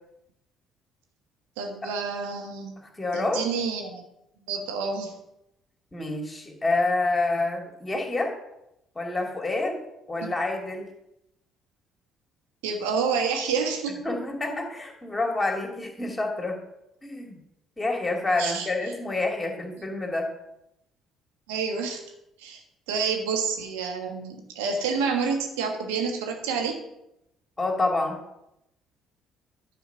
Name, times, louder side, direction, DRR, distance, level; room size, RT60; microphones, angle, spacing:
voice 1, 1.6-2.8 3.1-4.0 4.4-5.2 10.2-10.3 12.6-14.0 18.4-18.7 21.5-22.0 22.4-22.6 22.9-26.8, right 5 dB, 75° right, 2 dB, 1.5 m, -28 dB
voice 2, 3.0-3.4 5.9-8.3 8.9-9.8 10.1-10.9 14.0-16.6 17.0-17.4 17.8-20.3 27.6-28.2, left 2 dB, 20° left, 1 dB, 2.5 m, -27 dB
10.5 x 4.6 x 5.7 m, 0.85 s
hypercardioid pair, 50°, 0 cm